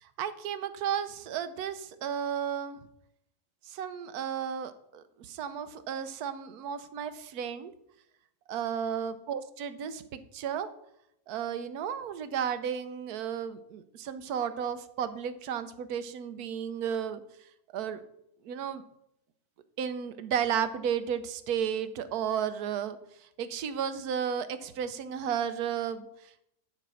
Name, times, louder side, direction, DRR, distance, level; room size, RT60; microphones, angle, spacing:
voice 1, 0.0-2.8 3.7-7.7 8.5-10.7 11.3-17.2 17.7-18.0 18.4-18.8 19.8-26.4, right 8 dB, 75° right, 12 dB, 1.2 m, -33 dB
9.9 x 4.4 x 6.2 m, 0.78 s
omnidirectional pair, 1.7 m